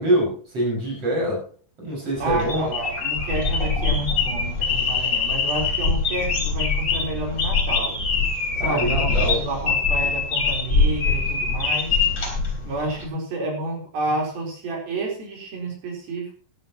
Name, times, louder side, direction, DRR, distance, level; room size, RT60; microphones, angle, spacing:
voice 1, 0.0-1.4 1.8-2.7 8.6-9.4, right 1 dB, 30° right, -3 dB, 6.7 m, -24 dB
sound 1, 2.1-13.0, left 4 dB, 25° left, 3.5 m, -23 dB
voice 2, 2.2-8.0 8.6-12.0 12.6-16.4, right 2 dB, 55° right, -1 dB, 5.6 m, -30 dB
15.5 x 13.5 x 3.0 m, 0.41 s
omnidirectional pair, 5.2 m